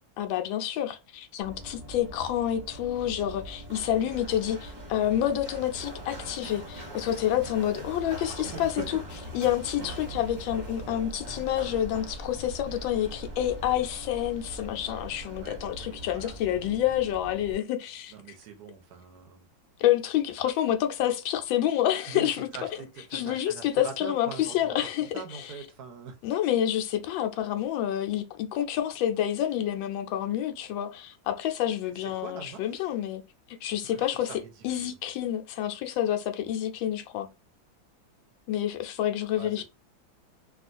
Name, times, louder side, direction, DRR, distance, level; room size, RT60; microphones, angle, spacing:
voice 1, 0.2-9.0 9.3-18.1 19.8-22.5 23.1-25.5 26.2-33.2 33.5-34.3 34.6-37.3 38.5-39.6, left 11 dB, 80° left, 1.3 m, -28 dB
Run, 1.4-17.5, right 1 dB, 30° right, 1.0 m, -41 dB
voice 2, 8.3-8.7 15.4-16.7 18.1-19.5 22.1-26.2 31.8-32.9 33.8-34.9 39.3-39.6, right 5 dB, 65° right, 1.1 m, -43 dB
3.5 x 2.4 x 2.5 m
omnidirectional pair, 2.1 m